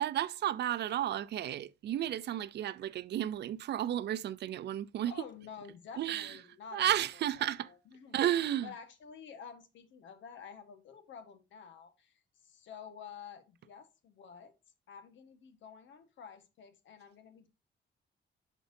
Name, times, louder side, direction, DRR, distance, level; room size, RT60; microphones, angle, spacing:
voice 1, 0.0-5.3 6.0-6.4 6.7-7.7 8.1-8.7, right 12 dB, 65° right, 0.5 m, -32 dB
voice 2, 5.0-7.0 7.4-8.2 8.6-14.5 14.9-17.5, left 6 dB, 80° left, 1.5 m, -50 dB
10.5 x 4.5 x 2.7 m
wide cardioid pair, 165°, 19 cm